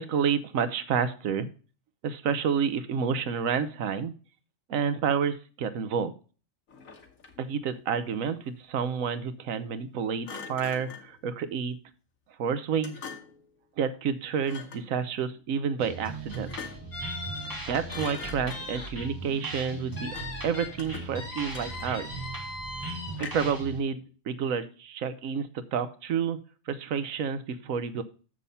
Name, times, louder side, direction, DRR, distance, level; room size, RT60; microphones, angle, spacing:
voice 1, 0.0-1.5 2.0-4.1 4.7-6.1 7.4-11.8 12.4-13.0 13.8-16.5 17.7-20.1 20.4-22.1 23.2-26.4 26.7-28.0, right 6 dB, 85° right, 11 dB, 1.2 m, -29 dB
Thump thud, 6.7-7.5 10.2-11.1 12.8-13.5 14.4-14.9 16.3-17.0 17.4-17.6 17.9-18.9 20.1-20.5 20.8-22.2 23.1-23.6, left 5 dB, 85° left, 1.6 m, -43 dB
sound 1, 15.8-23.8, right 3 dB, 15° right, 1.8 m, -39 dB
sound 2, 16.9-18.9 19.3-19.4 20.0-20.7 21.1-23.1, left 2 dB, 50° left, 2.5 m, -39 dB
7.0 x 6.3 x 5.5 m, 0.38 s
omnidirectional pair, 1.4 m